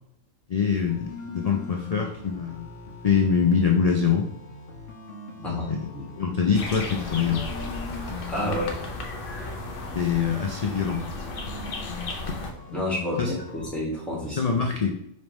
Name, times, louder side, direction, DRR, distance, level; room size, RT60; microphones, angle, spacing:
voice 1, 0.5-2.7 3.0-4.3 5.4-5.9 6.2-7.4 9.9-11.0 13.2-13.3 14.4-14.9, left 6 dB, 90° left, 1 dB, 0.3 m, -24 dB
sound 1, 0.9-13.7, left 4 dB, 70° left, 1.3 m, -41 dB
sound 2, 6.5-12.5, left 2 dB, 50° left, 0.7 m, -34 dB
voice 2, 8.3-8.8 12.7-14.4, left 1 dB, ahead, -5 dB, 1.6 m, -29 dB
5.2 x 3.4 x 3.0 m, 0.79 s
omnidirectional pair, 1.4 m